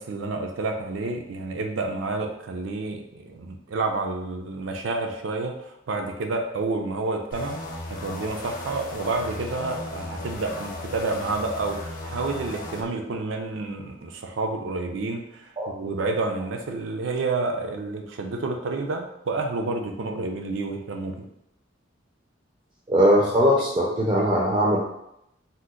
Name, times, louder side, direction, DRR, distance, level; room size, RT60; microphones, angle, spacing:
voice 1, 0.0-7.6 7.9-21.3, right 3 dB, 85° right, 4 dB, 0.4 m, -29 dB
sound 1, 7.3-12.8, left 2 dB, 45° left, 0.5 m, -36 dB
voice 2, 22.9-24.8, equal, 25° right, -3 dB, 0.4 m, -20 dB
2.8 x 2.1 x 3.6 m, 0.82 s
head